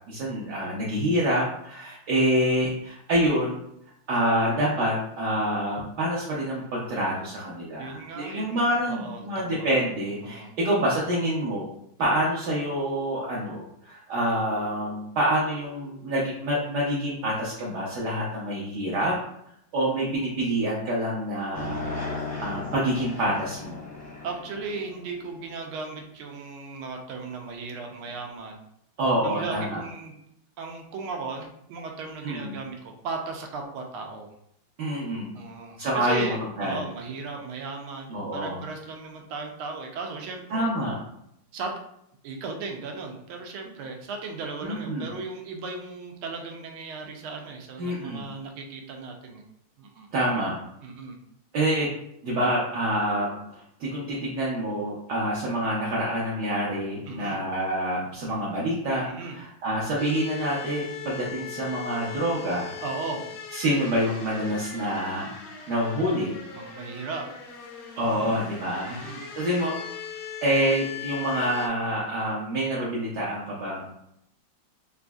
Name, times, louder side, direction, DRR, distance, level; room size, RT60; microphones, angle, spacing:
voice 1, 0.1-3.6 4.1-11.6 12.0-19.2 19.7-21.8 22.1-23.8 29.0-29.8 32.2-32.5 34.8-35.3 35.8-36.9 38.1-38.6 40.5-41.0 44.6-45.1 47.8-48.2 50.1-50.6 51.5-51.9 52.2-62.7 63.5-66.4 68.0-69.0 69.3-69.7 70.4-73.9, right 1 dB, 65° right, -6 dB, 1.2 m, -27 dB
voice 2, 7.8-9.7 10.2-10.5 24.2-28.6 29.2-30.2 30.6-34.3 35.3-40.7 41.5-41.8 42.2-49.4 49.8-50.1 50.8-51.2 57.1-57.4 59.0-59.4 62.8-63.3 66.5-67.2 68.0-68.4 68.9-69.2, right 4 dB, 90° right, 3 dB, 1.5 m, -36 dB
sound 1, 21.5-25.9, left 3 dB, 10° left, 0.6 m, -36 dB
sound 2, 60.0-71.7, left 7 dB, 70° left, 1.1 m, -39 dB
4.0 x 2.5 x 2.3 m, 0.76 s
omnidirectional pair, 2.3 m